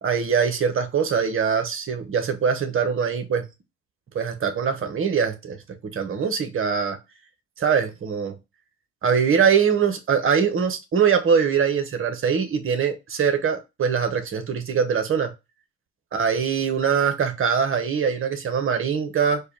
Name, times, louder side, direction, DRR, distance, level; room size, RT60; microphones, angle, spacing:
voice 1, 0.0-3.4 4.1-5.6 5.9-7.0 7.6-8.4 9.0-15.3 16.1-19.4, right 6 dB, 35° right, 1.0 m, -22 dB
4.4 x 2.3 x 3.2 m
figure-of-eight pair, 50°, 37 cm